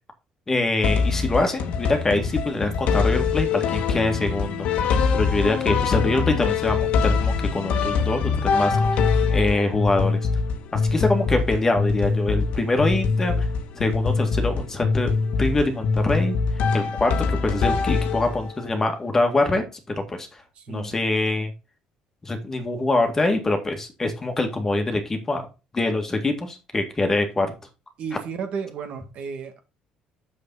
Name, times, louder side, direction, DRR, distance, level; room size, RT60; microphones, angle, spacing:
voice 1, 0.5-4.7 5.1-8.8 9.3-10.2 10.7-13.5 13.8-15.1 15.4-16.4 16.7-20.4 20.7-21.5 22.2-25.4 25.7-27.5, left 2 dB, 20° left, 5 dB, 1.9 m, -24 dB
sound 1, 0.8-18.6, left 5 dB, 65° left, 1.4 m, -23 dB
voice 2, 20.6-21.0 28.0-29.6, right 6 dB, 55° right, 7 dB, 1.7 m, -33 dB
7.0 x 6.7 x 4.0 m, 0.29 s
cardioid pair, 135°, 2 cm